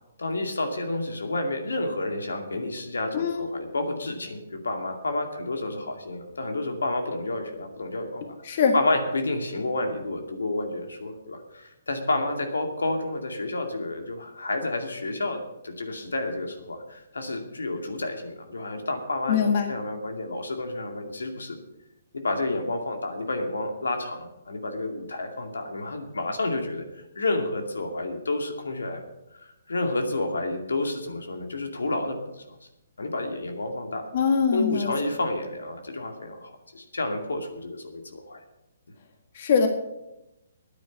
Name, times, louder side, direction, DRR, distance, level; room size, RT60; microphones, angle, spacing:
voice 1, 0.2-8.3 8.7-19.4 19.7-21.6 22.1-29.0 29.3-32.6 33.0-34.1 34.5-38.4, left 2 dB, 90° left, 4 dB, 2.3 m, -30 dB
voice 2, 3.1-3.5 8.4-8.7 19.3-19.7 34.1-34.9 39.3-39.7, left 6 dB, 50° left, 5 dB, 1.6 m, -22 dB
9.7 x 9.4 x 8.4 m, 0.91 s
hypercardioid pair, 145°, 0 cm